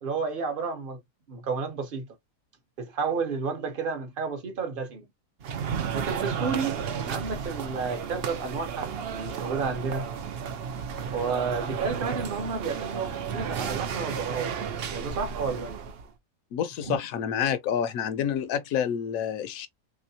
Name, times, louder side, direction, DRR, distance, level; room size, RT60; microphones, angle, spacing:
voice 1, 0.0-1.0 1.3-2.1 2.8-5.1 5.9-6.8 7.1-10.1 11.1-14.5 14.9-15.7 16.9-17.0, right 5 dB, 40° right, 0.9 m, -31 dB
sound 1, 5.4-16.1, right 7 dB, 65° right, 0.6 m, -33 dB
voice 2, 16.5-19.7, left 8 dB, 70° left, 0.9 m, -28 dB
3.4 x 2.8 x 2.7 m
omnidirectional pair, 1.7 m